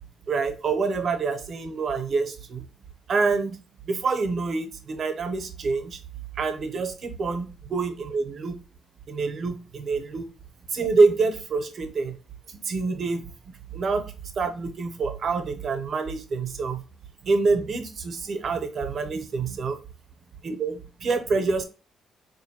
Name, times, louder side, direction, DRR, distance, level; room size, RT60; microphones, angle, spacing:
voice 1, 0.3-2.6 3.1-3.6 3.9-6.0 6.4-8.5 9.1-10.3 10.7-12.2 12.5-13.3 13.7-14.1 14.4-16.8 17.2-19.7 20.4-21.6, right 4 dB, 55° right, 7 dB, 0.7 m, -26 dB
4.0 x 2.6 x 2.8 m, 0.34 s
cardioid pair, 90°, 0 cm